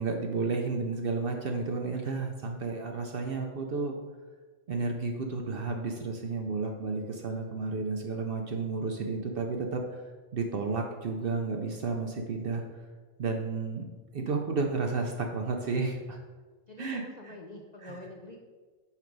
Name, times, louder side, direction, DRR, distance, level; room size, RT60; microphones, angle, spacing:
voice 1, 0.0-4.0 4.7-10.0 10.3-12.6 13.2-13.9 14.1-16.2 16.8-17.3 17.8-18.0, right 4 dB, 55° right, 3 dB, 0.7 m, -32 dB
voice 2, 16.7-18.4, left 1 dB, 55° left, 0 dB, 0.5 m, -46 dB
5.8 x 5.1 x 4.6 m, 1.4 s
omnidirectional pair, 1.4 m